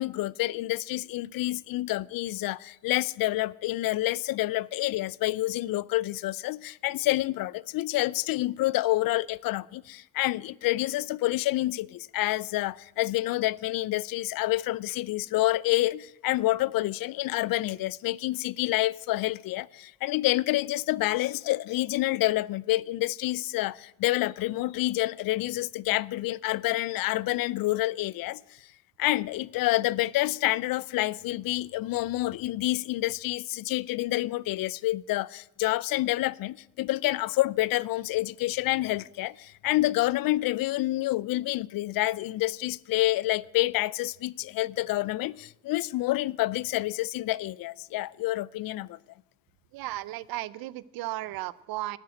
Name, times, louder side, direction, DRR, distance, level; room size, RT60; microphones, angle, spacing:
voice 1, 0.0-28.4 29.0-49.0, left 17 dB, 70° left, 0.5 m, -28 dB
voice 2, 49.7-52.0, right 16 dB, 75° right, 0.7 m, -35 dB
12.5 x 9.3 x 9.1 m
supercardioid pair, 70°, 36 cm